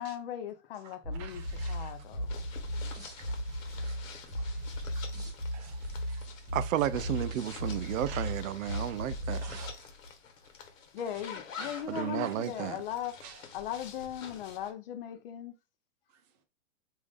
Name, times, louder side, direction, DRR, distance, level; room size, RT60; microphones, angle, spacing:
voice 1, 0.0-2.3 10.9-13.2 13.5-15.5, left 10 dB, 45° left, 0.6 m, -38 dB
voice 2, 0.7-2.0 2.7-6.4 8.1-8.3 8.9-9.0 9.4-9.9 11.0-11.1 11.6-12.3 13.2-13.5, right 7 dB, 30° right, 0.7 m, -51 dB
sound 1, 1.0-9.8, equal, 10° right, 1.1 m, -37 dB
sound 2, 1.4-14.7, left 6 dB, 80° left, 1.1 m, -49 dB
voice 3, 6.5-9.4 11.9-12.8, right 11 dB, 80° right, 0.5 m, -32 dB
3.5 x 2.6 x 3.2 m
hypercardioid pair, 150°, 39 cm